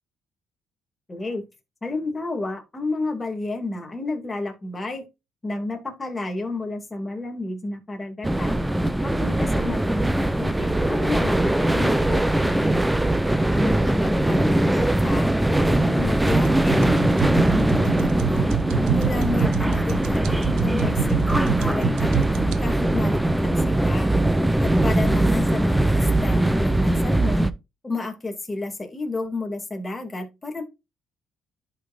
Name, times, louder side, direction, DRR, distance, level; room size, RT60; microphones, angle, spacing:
voice 1, 1.1-1.4 1.8-5.1 5.4-8.6 9.0-12.8 13.5-15.3 15.7-18.5 18.9-27.5 27.8-30.6, left 2 dB, 20° left, 2.1 m, -31 dB
sound 1, 8.2-27.5, right 1 dB, 5° right, 0.6 m, -21 dB
sound 2, 16.3-22.6, right 11 dB, 85° right, 0.7 m, -28 dB
11.5 x 5.4 x 2.4 m
cardioid pair, 100°, 0 cm